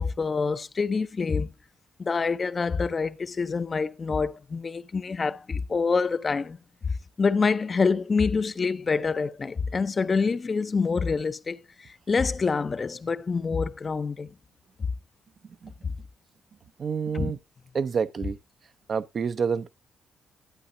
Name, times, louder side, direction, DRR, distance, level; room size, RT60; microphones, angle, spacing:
voice 1, 0.0-1.5 2.0-6.6 7.2-14.3 15.8-15.9 17.1-17.3, left 4 dB, 35° left, 0.5 m, -26 dB
voice 2, 16.8-17.4 17.7-18.4 18.9-19.7, right 6 dB, 50° right, 0.5 m, -28 dB
11.5 x 8.8 x 2.6 m
cardioid pair, 90°, 0 cm